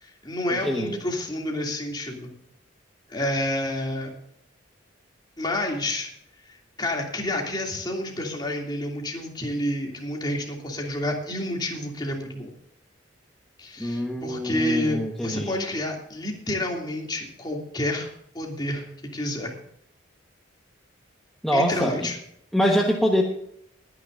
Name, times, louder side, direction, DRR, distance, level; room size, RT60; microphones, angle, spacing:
voice 1, 0.0-2.3 3.1-4.1 5.4-6.1 6.8-12.5 13.6-18.1 18.3-18.9 19.1-19.5 21.5-22.2, left 1 dB, 20° left, 0 dB, 2.8 m, -29 dB
voice 2, 0.6-1.0 13.8-15.7 21.4-22.1 22.5-23.2, equal, ahead, -1 dB, 1.3 m, -24 dB
22.5 x 10.0 x 2.6 m, 0.72 s
head